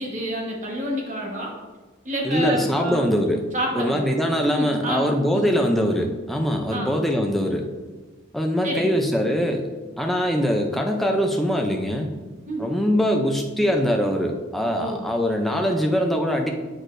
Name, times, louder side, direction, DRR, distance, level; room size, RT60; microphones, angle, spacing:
voice 1, 0.0-1.5 2.0-3.0 3.5-4.1 4.6-5.5 6.7-6.9 8.6-8.9 12.5-12.7 14.8-15.1, equal, 35° right, -1 dB, 1.3 m, -28 dB
voice 2, 2.2-3.4 3.7-7.7 8.3-9.7 10.0-12.1 12.6-16.5, equal, ahead, 1 dB, 0.5 m, -22 dB
7.9 x 6.4 x 2.6 m, 1.3 s
head